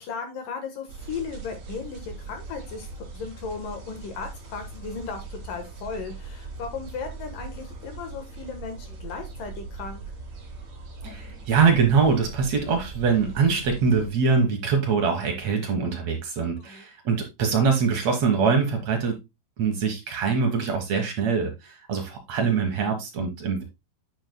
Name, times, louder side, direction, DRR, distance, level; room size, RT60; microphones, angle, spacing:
voice 1, 0.0-2.9 3.1-10.0 16.6-16.8, left 5 dB, 65° left, 6 dB, 2.5 m, -36 dB
sound 1, 0.9-14.1, right 3 dB, 45° right, 3.2 m, -40 dB
voice 2, 11.0-19.2 19.6-23.6, right 5 dB, 70° right, 3 dB, 1.6 m, -23 dB
9.3 x 8.3 x 2.2 m, 0.23 s
omnidirectional pair, 5.1 m